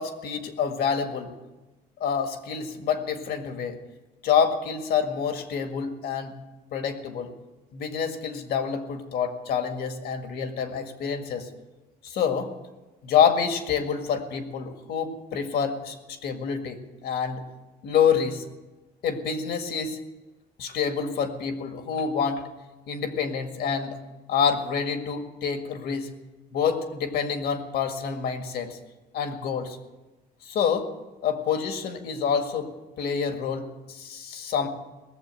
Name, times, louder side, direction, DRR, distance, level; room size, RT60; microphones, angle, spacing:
voice 1, 0.0-1.3 2.0-3.8 4.2-6.3 6.7-7.3 7.7-11.5 12.0-12.5 13.0-16.0 16.2-17.4 17.8-18.4 19.0-20.0 20.6-22.4 22.9-24.0 24.3-26.1 26.5-28.8 29.1-29.8 30.5-30.9 31.2-34.7, left 7 dB, 70° left, 6 dB, 1.9 m, -27 dB
18.5 x 7.3 x 8.9 m, 1.1 s
cardioid pair, 110°, 17 cm